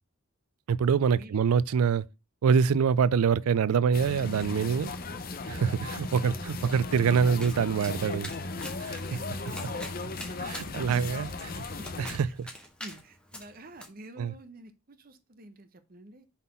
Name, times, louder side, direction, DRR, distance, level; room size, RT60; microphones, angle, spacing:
voice 1, 0.7-2.1 2.4-4.9 5.5-8.3 8.8-9.0 10.4-11.6 12.0-12.3 14.2-14.3, right 6 dB, 90° right, 0.4 m, -25 dB
sound 1, 3.9-12.2, left 3 dB, 40° left, 0.6 m, -36 dB
voice 2, 5.9-6.7 9.1-9.6 10.1-11.3 11.6-12.3 12.8-16.3, right 1 dB, 40° right, 0.8 m, -50 dB
Domestic sounds home sounds, 7.4-13.9, left 1 dB, 5° left, 1.3 m, -46 dB
5.7 x 4.1 x 5.4 m
head